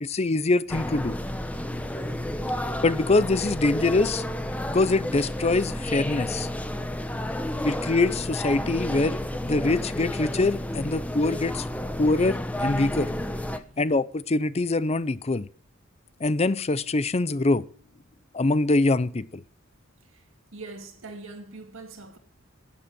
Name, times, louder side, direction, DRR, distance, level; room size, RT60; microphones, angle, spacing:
voice 1, 0.0-1.2 2.8-4.2 4.7-6.5 7.6-11.7 12.0-13.1 13.8-15.5 16.2-17.6 18.3-19.4, left 2 dB, 30° left, 0.6 m, -24 dB
sound 1, 0.7-13.6, left 1 dB, 5° left, 1.0 m, -31 dB
voice 2, 20.5-22.2, right 3 dB, 75° right, 2.3 m, -43 dB
11.5 x 10.5 x 6.1 m
head